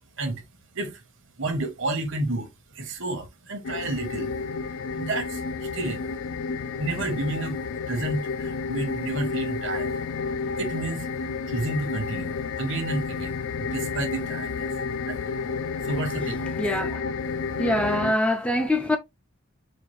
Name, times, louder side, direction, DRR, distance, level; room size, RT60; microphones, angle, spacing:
voice 1, 1.4-2.5 2.7-4.3 5.0-6.1 6.7-7.6 7.9-9.9 10.6-11.1 11.5-14.7 15.1-15.2 15.8-16.5, right 2 dB, 65° right, 1.0 m, -30 dB
sound 1, 3.6-18.1, left 5 dB, 75° left, 0.4 m, -31 dB
voice 2, 16.6-17.0 17.6-19.0, left 1 dB, 5° left, 0.3 m, -24 dB
4.3 x 2.4 x 3.1 m
head